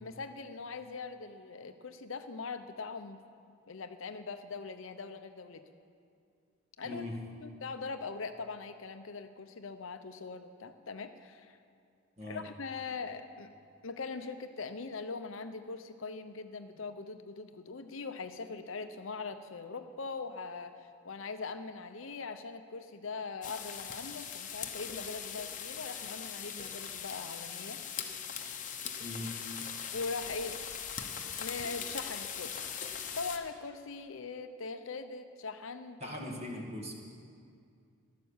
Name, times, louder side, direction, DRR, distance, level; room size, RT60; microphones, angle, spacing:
voice 1, 0.0-3.2 3.7-5.6 6.8-7.0 7.4-11.6 12.2-13.5 13.8-27.8 29.9-30.6 31.4-32.7 33.2-36.2, left 4 dB, 65° left, 9 dB, 0.7 m, -41 dB
voice 2, 6.8-7.2 12.2-12.4 29.0-29.3 36.0-36.9, left 1 dB, 30° right, 0 dB, 1.9 m, -40 dB
sound 1, 23.4-33.4, left 8 dB, 35° left, 1.0 m, -40 dB
14.0 x 11.5 x 7.2 m, 2.3 s
head